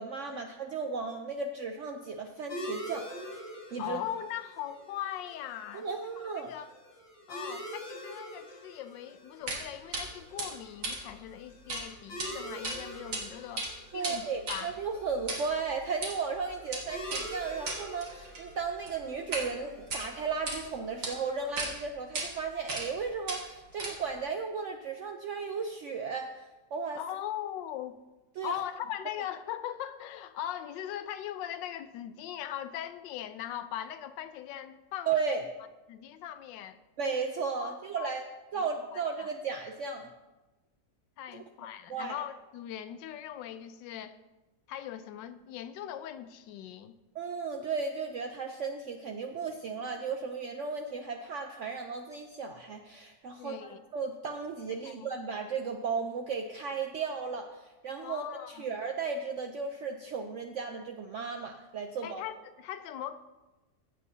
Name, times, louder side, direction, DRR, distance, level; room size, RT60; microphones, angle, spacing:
voice 1, 0.0-3.2 3.7-4.0 5.7-6.5 13.9-27.0 28.4-28.6 35.1-35.4 37.0-38.2 38.5-40.1 41.3-41.4 41.9-42.2 47.1-53.6 53.9-62.2, right 5 dB, 85° right, 4 dB, 0.6 m, -35 dB
sound 1, 2.5-21.6, equal, 65° left, 3.4 m, -46 dB
voice 2, 3.8-6.0 6.4-6.7 7.3-14.7 26.9-28.0 28.4-35.4 35.9-36.8 37.6-38.2 38.5-39.3 41.2-44.2 44.7-47.0 53.4-53.8 54.8-55.1 58.0-58.7 62.0-63.2, left 11 dB, 80° left, 11 dB, 1.2 m, -40 dB
sound 2, 9.5-9.6 9.9-10.0 10.4-11.8 12.1-12.3 12.6-13.2 13.5-19.5 19.8-20.6 21.0-21.1 21.6-21.7 22.1-22.3 22.7-23.0 23.3-24.2, right 2 dB, 65° right, 2.1 m, -37 dB
16.0 x 7.6 x 2.7 m, 1.1 s
omnidirectional pair, 1.9 m